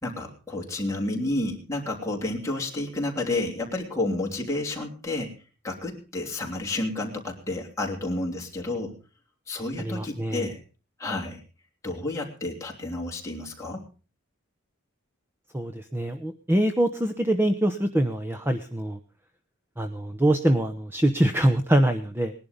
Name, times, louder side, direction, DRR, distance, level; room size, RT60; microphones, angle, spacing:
voice 1, 0.0-5.3 5.6-8.9 9.5-10.6 11.0-11.4 11.8-13.8, left 2 dB, 15° left, -1 dB, 3.1 m, -30 dB
voice 2, 9.8-10.4 15.5-19.0 19.8-22.3, right 1 dB, 10° right, 7 dB, 0.8 m, -24 dB
19.5 x 11.0 x 5.2 m, 0.36 s
head